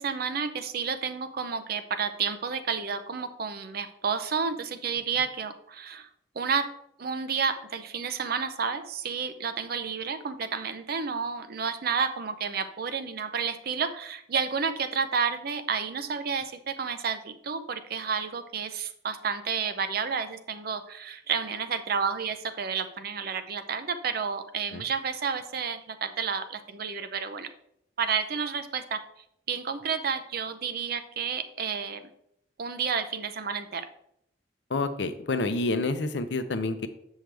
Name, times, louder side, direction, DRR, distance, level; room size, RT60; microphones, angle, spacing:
voice 1, 0.0-6.1 6.3-6.7 7.0-27.5 28.0-29.0 29.5-32.0 32.6-33.9, right 6 dB, 55° right, 10 dB, 0.6 m, -31 dB
voice 2, 34.7-36.9, left 3 dB, 70° left, 9 dB, 0.6 m, -28 dB
7.5 x 6.4 x 3.3 m, 0.75 s
head